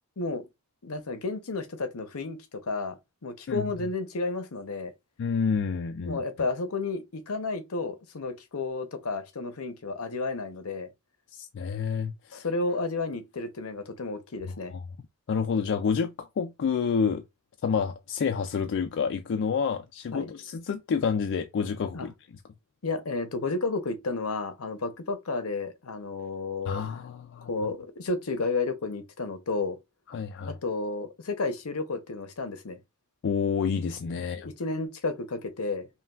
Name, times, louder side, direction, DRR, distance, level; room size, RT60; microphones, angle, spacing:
voice 1, 0.8-3.0 3.2-4.9 6.1-10.9 12.3-14.7 20.1-20.3 21.9-22.1 22.8-26.8 27.5-29.8 30.4-32.8 34.3-35.9, left 3 dB, 80° left, 0.8 m, -32 dB
voice 2, 5.2-6.2 11.3-12.5 14.7-14.8 15.3-17.2 17.6-22.1 26.7-27.5 30.1-30.6 33.2-34.5, left 6 dB, 55° left, 0.4 m, -29 dB
5.5 x 2.3 x 2.3 m
head